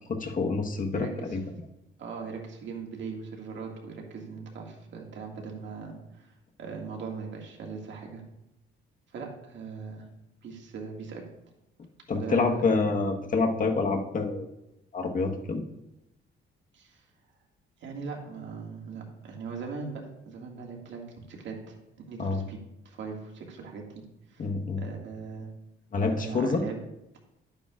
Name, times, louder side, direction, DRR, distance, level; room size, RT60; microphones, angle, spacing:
voice 1, 0.1-1.1 1.3-1.4 12.1-14.5 14.9-15.6 22.2-22.4 24.4-24.8 25.9-26.6, left 4 dB, 45° left, 2 dB, 1.3 m, -27 dB
voice 2, 0.9-1.4 2.0-6.3 6.6-8.2 9.1-10.1 10.4-11.3 12.1-12.9 16.7-17.0 17.8-21.8 22.1-22.6 22.8-24.5 24.8-25.5 26.1-26.8, right 5 dB, 70° right, 0 dB, 2.0 m, -40 dB
10.5 x 8.6 x 2.5 m, 0.89 s
cardioid pair, 90°, 20 cm